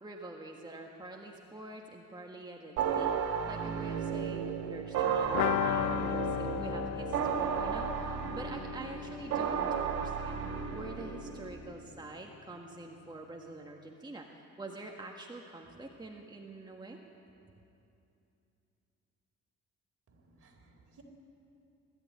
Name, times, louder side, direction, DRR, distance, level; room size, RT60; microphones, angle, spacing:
voice 1, 0.0-3.1 3.5-10.4 10.7-17.0, right 2 dB, 15° right, 1 dB, 1.7 m, -46 dB
sound 1, 2.8-11.5, right 7 dB, 85° right, 2.1 m, -33 dB
sound 2, 5.3-10.9 11.2-11.3 11.6-11.7, left 13 dB, 85° left, 0.6 m, -36 dB
voice 2, 20.1-21.0, right 3 dB, 50° right, 2 dB, 3.8 m, -61 dB
20.5 x 13.5 x 9.5 m, 2.8 s
cardioid pair, 90°, 30 cm